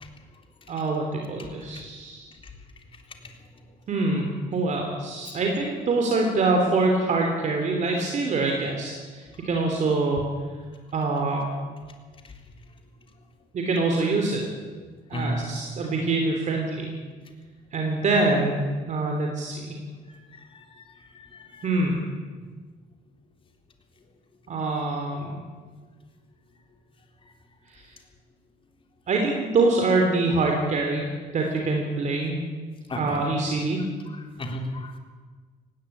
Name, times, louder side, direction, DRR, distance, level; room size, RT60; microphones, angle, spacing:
voice 1, 0.7-2.3 3.9-4.3 4.5-10.3 10.9-11.5 13.5-14.4 15.1-16.9 17.7-19.8 21.6-22.1 24.5-25.4 27.7-27.9 29.1-32.4 32.9-33.8, right 3 dB, 45° right, 2 dB, 3.4 m, -25 dB
voice 2, 15.1-15.5 20.5-20.9 21.1-21.7 32.9-33.2 34.4-35.0, left 1 dB, 30° left, 3 dB, 3.7 m, -33 dB
18.5 x 17.0 x 8.7 m, 1.5 s
cardioid pair, 110°, 17 cm